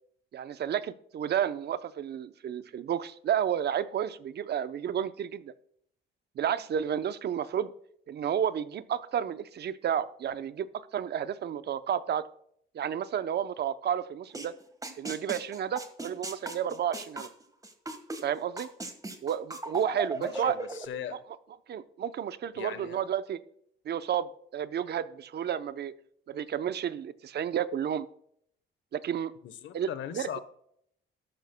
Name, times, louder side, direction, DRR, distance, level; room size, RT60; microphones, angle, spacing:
voice 1, 0.3-5.5 6.4-7.7 8.1-12.2 12.7-14.5 15.0-17.3 18.2-18.7 19.2-20.6 21.7-23.4 23.9-25.9 26.3-28.1 28.9-29.3 29.7-30.4, right 9 dB, 55° right, 14 dB, 0.7 m, -31 dB
sound 1, 14.3-14.5 14.8-18.2 18.6-20.9, right 2 dB, 15° right, 1.5 m, -36 dB
voice 2, 20.1-21.2 22.5-23.0 29.4-30.4, left 10 dB, 75° left, 13 dB, 1.0 m, -39 dB
13.0 x 12.0 x 2.2 m, 0.68 s
cardioid pair, 90°, 20 cm